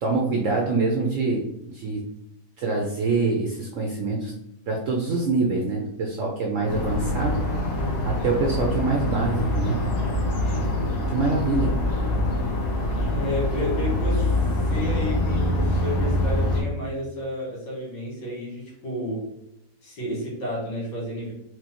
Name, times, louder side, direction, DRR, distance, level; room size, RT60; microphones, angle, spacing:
voice 1, 0.0-1.5 1.7-2.0 2.6-4.3 4.7-7.4 8.0-9.8 11.1-11.8, right 3 dB, 70° right, 0 dB, 0.7 m, -25 dB
sound 1, 6.7-16.6, left 1 dB, 70° left, 1.5 m, -25 dB
voice 2, 13.1-14.3 14.6-19.3 19.8-21.3, equal, 85° left, -6 dB, 2.4 m, -31 dB
4.6 x 2.2 x 2.9 m, 0.82 s
omnidirectional pair, 1.8 m